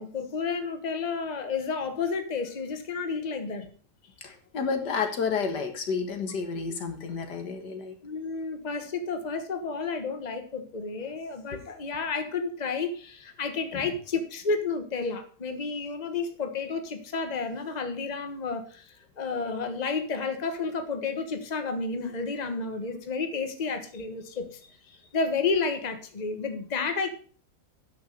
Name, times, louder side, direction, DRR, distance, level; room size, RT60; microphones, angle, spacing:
voice 1, 0.0-3.6 8.0-27.1, left 4 dB, 25° left, 7 dB, 1.3 m, -31 dB
voice 2, 4.2-8.0 11.5-11.6 13.7-13.9, left 5 dB, 85° left, 6 dB, 2.1 m, -31 dB
9.2 x 6.4 x 6.6 m, 0.42 s
omnidirectional pair, 1.8 m